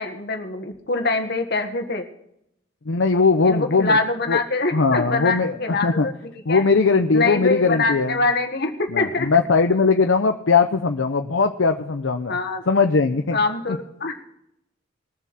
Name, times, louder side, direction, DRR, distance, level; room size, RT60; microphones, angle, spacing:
voice 1, 0.0-2.1 3.4-6.6 7.1-9.3 12.3-12.6 13.3-14.2, left 3 dB, 55° left, 6 dB, 1.6 m, -24 dB
voice 2, 2.9-4.0 4.3-4.4 4.7-6.1 6.5-8.2 8.9-12.4 12.7-13.4, left 4 dB, 70° left, 6 dB, 0.7 m, -19 dB
21.5 x 7.3 x 4.3 m, 0.79 s
head